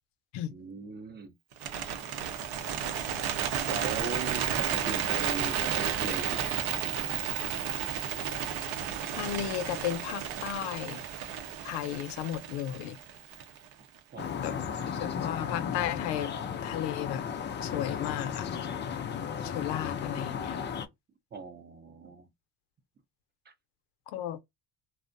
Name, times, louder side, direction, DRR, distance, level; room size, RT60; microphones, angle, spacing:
voice 1, 0.5-1.3 3.2-3.3 3.7-6.7 14.1-15.1 19.9-20.5 21.3-22.3 23.5-23.6, right 4 dB, 25° right, 0.5 m, -40 dB
Bird, 1.5-13.7, right 9 dB, 65° right, 0.7 m, -32 dB
voice 2, 9.2-11.0 11.6-13.0 14.4-14.5 14.9-16.3 16.6-17.2 17.6-18.5 19.4-20.6 24.1-24.4, left 11 dB, 80° left, 0.6 m, -34 dB
sound 1, 14.2-20.9, left 7 dB, 30° left, 0.4 m, -35 dB
2.5 x 2.0 x 2.5 m
cardioid pair, 100°, 41 cm